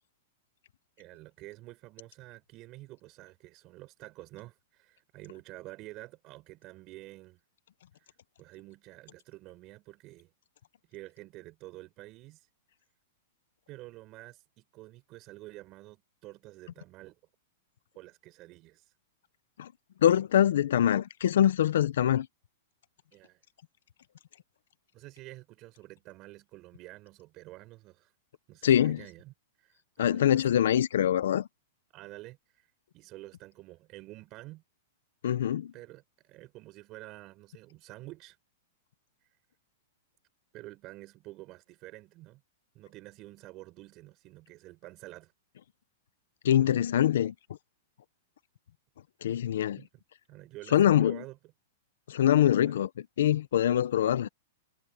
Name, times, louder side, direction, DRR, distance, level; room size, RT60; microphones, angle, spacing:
voice 1, 1.0-7.4 7.9-10.3 10.9-12.5 13.7-17.2 18.0-18.9 23.1-23.4 24.9-28.1 28.5-30.4 31.9-32.7 32.9-34.6 35.7-38.4 40.5-42.4 42.7-45.3 49.8-49.9 50.3-51.5 52.6-52.8, right 18 dB, 30° right, 5.4 m, -49 dB
voice 2, 20.0-22.3 28.6-29.0 30.0-31.5 35.2-35.7 46.4-47.3 49.2-49.8 50.7-51.2 52.1-52.9 53.2-54.3, left 10 dB, 75° left, 0.8 m, -24 dB
supercardioid pair, 155°, 0 cm